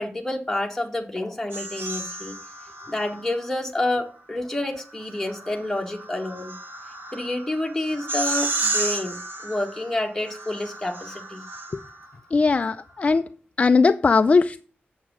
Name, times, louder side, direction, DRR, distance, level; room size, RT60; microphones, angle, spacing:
voice 1, 0.0-2.4 2.9-6.5 7.1-9.2 9.4-11.5, left 1 dB, 10° left, 1.8 m, -28 dB
sound 1, 1.5-3.5 4.9-12.1, right 2 dB, 80° right, 2.7 m, -32 dB
voice 2, 12.3-13.2 13.6-14.6, left 4 dB, 35° left, 0.4 m, -19 dB
8.3 x 7.2 x 6.1 m
wide cardioid pair, 155°, 4 cm